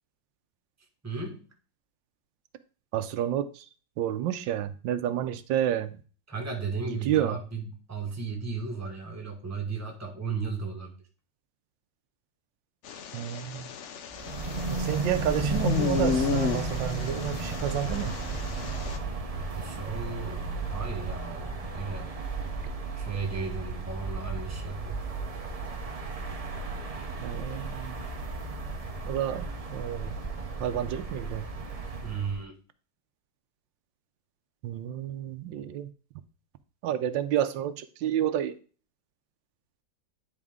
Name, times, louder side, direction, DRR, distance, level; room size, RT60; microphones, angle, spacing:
voice 1, 1.0-1.4 6.3-11.0 19.5-22.1 23.0-25.1 32.0-32.5, right 4 dB, 10° right, 2 dB, 1.1 m, -35 dB
voice 2, 2.9-3.7 4.0-5.9 6.9-7.4 13.1-13.7 14.7-18.2 27.2-28.0 29.0-30.1 30.6-31.5 34.6-35.9 36.8-38.6, right 11 dB, 85° right, 11 dB, 1.3 m, -30 dB
sound 1, 12.8-19.0, left 7 dB, 90° left, 0.6 m, -33 dB
sound 2, 14.1-32.4, right 3 dB, 50° right, 0.4 m, -34 dB
9.9 x 4.3 x 3.6 m, 0.37 s
omnidirectional pair, 2.0 m